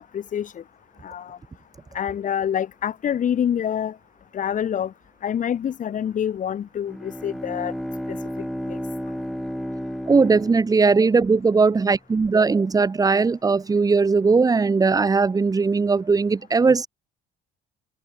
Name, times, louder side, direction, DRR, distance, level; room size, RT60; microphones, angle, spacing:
voice 1, 0.1-0.5 1.0-1.4 1.9-3.9 4.3-4.9 5.2-7.7 8.7-8.8, left 9 dB, 40° left, 1.3 m, -26 dB
Bowed string instrument, 6.9-11.4, equal, ahead, 5.4 m, -32 dB
voice 2, 10.1-16.9, right 4 dB, 20° right, 1.0 m, -19 dB
cardioid pair, 125°, 20 cm